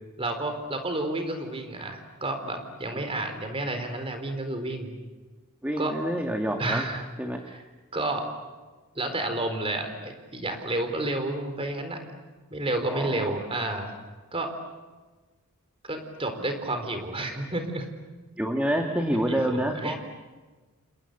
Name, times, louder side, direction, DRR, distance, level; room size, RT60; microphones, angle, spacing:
voice 1, 0.2-4.9 5.8-5.9 6.6-7.1 7.5-7.6 7.9-8.3 9.0-12.0 12.5-13.9 14.3-14.5 15.8-17.9 19.3-20.0, right 2 dB, 25° right, 6 dB, 4.1 m, -30 dB
voice 2, 5.6-6.9 7.2-7.4 12.9-13.3 18.4-20.0, equal, 5° right, 3 dB, 2.0 m, -27 dB
30.0 x 29.0 x 6.8 m, 1.3 s
head